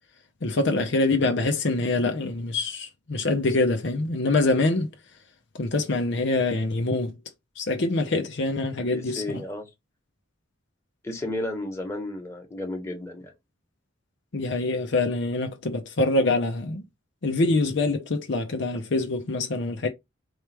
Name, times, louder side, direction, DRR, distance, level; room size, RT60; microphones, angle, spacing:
voice 1, 0.4-4.9 5.6-7.2 7.6-9.4 14.3-16.8 17.2-19.9, left 2 dB, 60° left, 0.6 m, -25 dB
voice 2, 8.9-9.7 11.0-13.3, left 1 dB, 15° left, 1.2 m, -33 dB
4.0 x 3.3 x 3.3 m
head